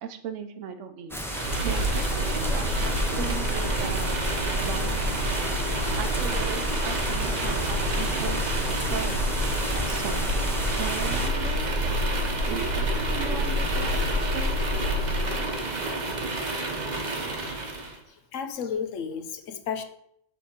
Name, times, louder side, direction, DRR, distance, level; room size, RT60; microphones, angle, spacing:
voice 1, 0.0-4.3 4.6-9.2 9.7-10.4 10.8-12.0 12.5-14.5, right 7 dB, 75° right, 8 dB, 1.0 m, -38 dB
sound 1, 1.1-11.3, equal, 5° left, 0.3 m, -33 dB
sound 2, 1.2-18.0, right 1 dB, 40° right, 0.9 m, -27 dB
voice 2, 17.4-17.8 18.3-19.8, left 7 dB, 80° left, 8 dB, 1.1 m, -33 dB
7.1 x 3.2 x 5.8 m, 0.73 s
omnidirectional pair, 1.3 m